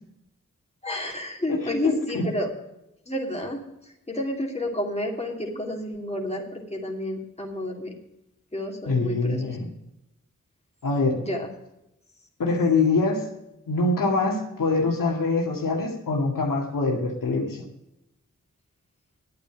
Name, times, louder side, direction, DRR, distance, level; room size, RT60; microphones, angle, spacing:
voice 1, 0.8-2.5 3.1-3.6 4.1-7.9 8.5-9.6 11.2-11.5, left 1 dB, 20° left, 1 dB, 2.6 m, -30 dB
voice 2, 1.5-2.3 8.9-9.7 10.8-11.2 12.4-13.2 13.7-17.6, left 3 dB, 85° left, 0 dB, 2.1 m, -24 dB
10.5 x 8.8 x 5.9 m, 0.88 s
cardioid pair, 45°, 32 cm